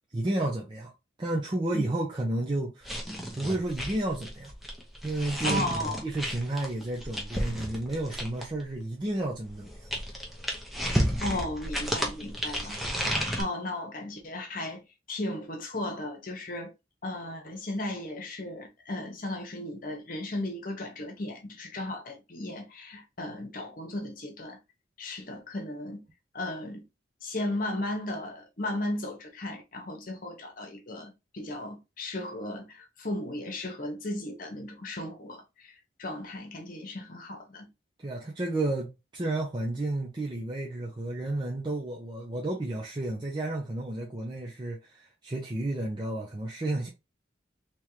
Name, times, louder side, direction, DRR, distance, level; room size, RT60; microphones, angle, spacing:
voice 1, 0.1-0.9 1.2-2.9 3.4-4.5 5.0-5.7 6.0-9.9 38.0-46.9, right 2 dB, 25° right, 0.6 m, -31 dB
sound 1, 2.8-8.6 9.5-13.4, equal, ahead, 0.8 m, -32 dB
voice 2, 5.4-6.0 11.2-14.8 15.1-16.7 17.0-24.6 25.0-26.0 26.3-26.8 27.2-35.7 36.0-37.7, left 1 dB, 50° left, 1.0 m, -35 dB
3.5 x 3.0 x 3.1 m
head